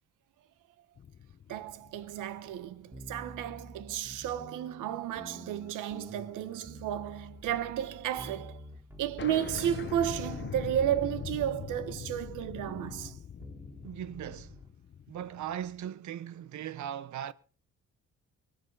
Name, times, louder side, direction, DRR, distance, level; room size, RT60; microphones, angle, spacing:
sound 1, 1.0-3.6 4.0-4.1 5.6-6.0 6.2-7.7 8.0-8.1 8.3-8.4 8.7-8.8 9.2-15.9, left 8 dB, 40° left, 0.9 m, -42 dB
voice 1, 1.5-8.6 9.0-13.2, right 11 dB, 90° right, 1.3 m, -33 dB
sound 2, 2.9-14.7, equal, 10° right, 3.9 m, -49 dB
voice 2, 13.8-14.6 15.1-17.3, right 10 dB, 70° right, 1.0 m, -38 dB
23.5 x 9.5 x 4.1 m
cardioid pair, 90°, 30 cm